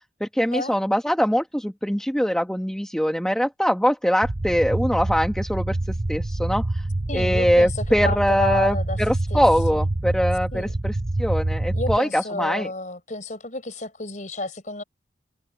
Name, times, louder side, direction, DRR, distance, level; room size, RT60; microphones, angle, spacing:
voice 1, 0.2-5.8 6.1-6.8 7.1-12.7, equal, 5° left, 1.3 m, -22 dB
sound 1, 4.2-12.0, right 2 dB, 30° right, 0.7 m, -26 dB
voice 2, 7.1-9.0 9.3-9.4 9.7-9.8 10.5-10.7 11.7-14.8, left 2 dB, 40° left, 4.9 m, -31 dB
head